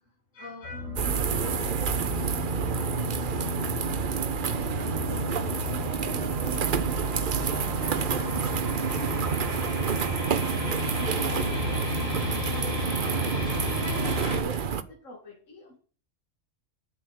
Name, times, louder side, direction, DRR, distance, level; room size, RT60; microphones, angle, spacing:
voice 1, 0.3-2.7 4.4-8.7 9.1-12.7 13.4-15.8, left 1 dB, 80° left, -2 dB, 2.7 m, -44 dB
sound 1, 0.6-14.4, left 3 dB, 25° left, 3.4 m, -33 dB
sound 2, 0.7-12.6, right 3 dB, 65° right, 1.6 m, -41 dB
sound 3, 1.0-14.8, right 7 dB, 50° right, 0.8 m, -29 dB
11.5 x 6.7 x 6.4 m, 0.41 s
omnidirectional pair, 1.3 m